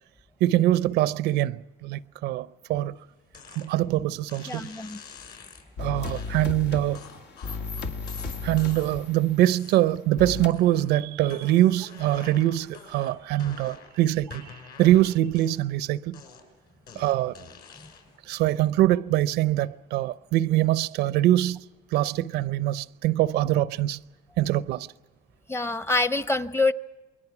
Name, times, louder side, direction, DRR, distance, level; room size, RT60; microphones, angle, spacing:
voice 1, 0.4-2.9 3.6-4.7 5.8-7.0 8.4-14.5 14.8-16.2 17.0-17.5 18.3-21.6 21.9-24.0 24.4-24.9, right 14 dB, 85° right, 0.6 m, -23 dB
sound 1, 3.3-3.7 4.3-5.7 6.1-6.3 6.9-9.1 9.5-10.1 10.5-10.9 11.2-14.0 14.3-15.8 16.1-18.2, left 6 dB, 65° left, 6.2 m, -47 dB
voice 2, 4.5-5.0 25.5-26.7, left 3 dB, 15° left, 0.8 m, -25 dB
sound 2, 5.8-9.5 10.2-10.5, left 4 dB, 90° left, 2.1 m, -35 dB
28.5 x 22.0 x 6.0 m
cardioid pair, 110°, 17 cm